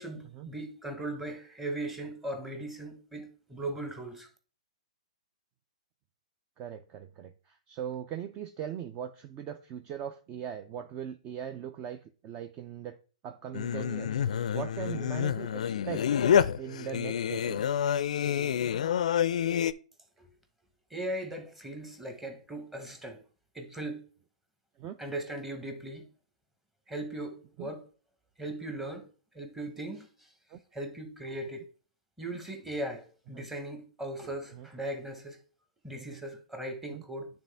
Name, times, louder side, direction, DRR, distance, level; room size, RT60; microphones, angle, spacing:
voice 1, 0.0-4.3 20.2-20.3 20.9-23.2 23.5-24.0 25.0-26.1 26.9-27.9 28.4-29.1 29.3-30.3 30.7-31.6 32.2-35.4 35.8-37.3, right 1 dB, 5° right, 1.1 m, -38 dB
voice 2, 6.6-13.0 13.2-16.1 16.6-17.6 24.8-25.0 27.6-27.7 30.5-30.6 33.3-33.4 34.5-34.7 35.9-36.2 36.9-37.0, right 9 dB, 30° right, 0.4 m, -40 dB
Singing, 13.5-19.7, left 8 dB, 65° left, 0.4 m, -28 dB
8.9 x 3.6 x 3.4 m
hypercardioid pair, 130°, 4 cm